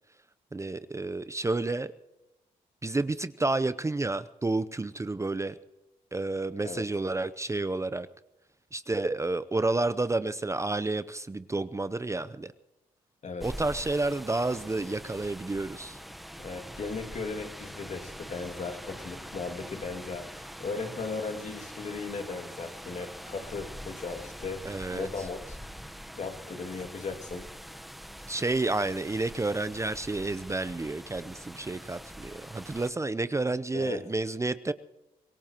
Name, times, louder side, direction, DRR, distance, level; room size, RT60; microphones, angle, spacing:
voice 1, 0.5-1.9 2.8-5.6 6.1-8.1 8.7-12.5 13.4-16.0 24.6-25.1 28.3-34.7, right 2 dB, 20° right, 14 dB, 0.7 m, -30 dB
sound 1, 13.4-32.9, equal, ahead, 1.0 m, -44 dB
voice 2, 16.4-25.6 26.2-27.5 33.7-34.0, left 4 dB, 50° left, 7 dB, 2.3 m, -37 dB
25.5 x 18.0 x 3.0 m, 0.99 s
supercardioid pair, 55°, 15 cm